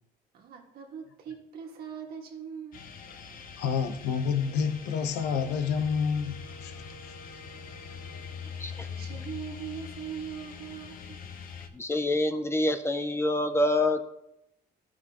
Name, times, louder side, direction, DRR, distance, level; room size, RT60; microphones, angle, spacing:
voice 1, 0.3-2.9 7.2-7.4 7.9-8.0 8.5-11.2, right 7 dB, 65° right, 1 dB, 1.7 m, -41 dB
sound 1, 2.7-11.7, left 6 dB, 60° left, 1.0 m, -43 dB
voice 2, 3.6-6.8 7.0-7.1, left 6 dB, 85° left, 8 dB, 0.8 m, -29 dB
Wind instrument woodwind instrument, 4.1-8.6, right 3 dB, 40° right, 2.1 m, -52 dB
voice 3, 11.7-14.1, left 1 dB, 15° left, 9 dB, 0.5 m, -26 dB
12.5 x 6.0 x 2.9 m, 0.86 s
cardioid pair, 110°, 17 cm